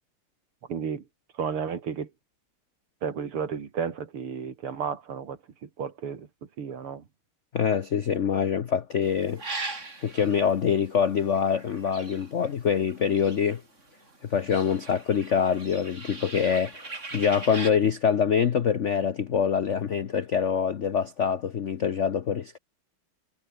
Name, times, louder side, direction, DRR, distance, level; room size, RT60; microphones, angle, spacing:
voice 1, 0.7-1.0 1.4-2.1 3.0-6.3 6.6-7.0, right 7 dB, 80° right, 3.2 m, -32 dB
voice 2, 7.5-9.4 10.0-13.6 14.2-22.6, left 7 dB, 60° left, 0.7 m, -25 dB
sound 1, 9.0-13.8 14.1-17.7, right 3 dB, 30° right, 3.6 m, -40 dB
omnidirectional pair, 2.4 m